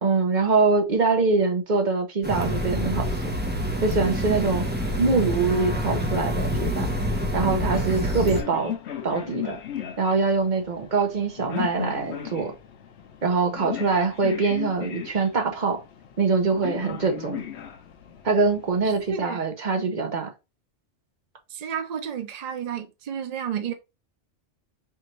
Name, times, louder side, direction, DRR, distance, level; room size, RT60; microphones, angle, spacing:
voice 1, 0.0-3.1 3.8-4.6 5.0-6.9 7.3-8.7 9.0-9.6 10.0-12.5 13.2-15.8 16.2-17.4 18.2-20.3, right 4 dB, 45° right, 0.9 m, -23 dB
sound 1, 2.2-8.4, equal, 10° right, 0.7 m, -27 dB
sound 2, 7.1-19.2, left 9 dB, 70° left, 0.9 m, -37 dB
voice 2, 19.1-19.4 21.5-23.7, right 8 dB, 60° right, 0.4 m, -31 dB
4.5 x 2.5 x 3.0 m
omnidirectional pair, 1.2 m